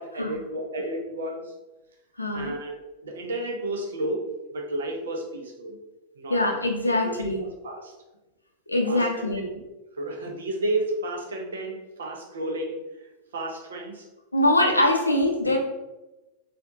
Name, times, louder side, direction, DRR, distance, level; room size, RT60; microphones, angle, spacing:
voice 1, 0.0-1.5 2.3-5.8 6.2-6.4 6.9-7.9 8.9-9.6 10.0-12.8 13.3-14.1, right 1 dB, 65° right, 2 dB, 0.6 m, -32 dB
voice 2, 2.2-2.5 6.3-7.4 8.7-9.4 14.3-15.6, left 1 dB, 85° left, 1 dB, 0.6 m, -23 dB
4.4 x 2.4 x 2.7 m, 1.0 s
figure-of-eight pair, 90°, 0 cm